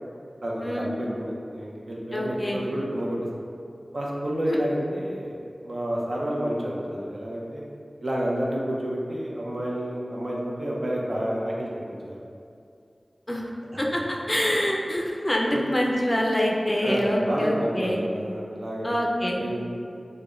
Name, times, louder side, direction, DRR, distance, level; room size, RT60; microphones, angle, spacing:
voice 1, 0.4-3.2 3.9-5.4 5.6-7.6 8.0-12.2 15.5-15.6 16.8-18.9 19.4-19.8, equal, 65° right, -4 dB, 0.6 m, -29 dB
voice 2, 2.1-2.6 4.5-4.6 13.3-13.4 13.8-14.0 14.3-18.0 18.8-19.4, equal, 25° left, -1 dB, 0.4 m, -25 dB
4.8 x 2.1 x 2.4 m, 2.4 s
wide cardioid pair, 50°, 0 cm